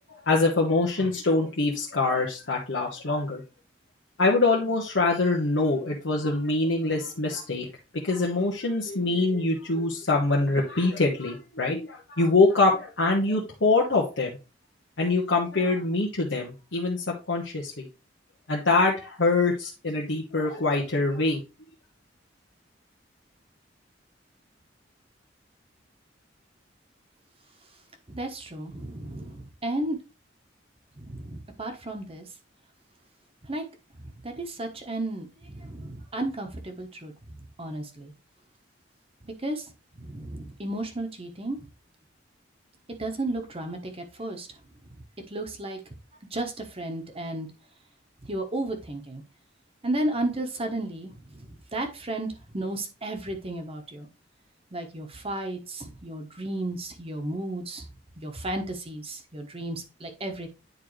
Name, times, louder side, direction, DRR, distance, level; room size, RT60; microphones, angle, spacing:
voice 1, 0.1-3.4 4.2-7.7 8.0-14.3 15.0-17.9 18.5-21.4, left 3 dB, 85° left, -2 dB, 1.2 m, -24 dB
voice 2, 28.1-30.0 31.0-32.2 33.5-33.6 34.2-37.1 37.6-38.1 39.2-39.6 40.0-41.6 43.0-44.5 45.3-45.8 46.3-47.5 48.3-49.2 49.8-54.1 54.7-57.9 58.2-60.5, right 1 dB, 30° right, 5 dB, 1.1 m, -33 dB
9.5 x 3.9 x 3.2 m, 0.29 s
head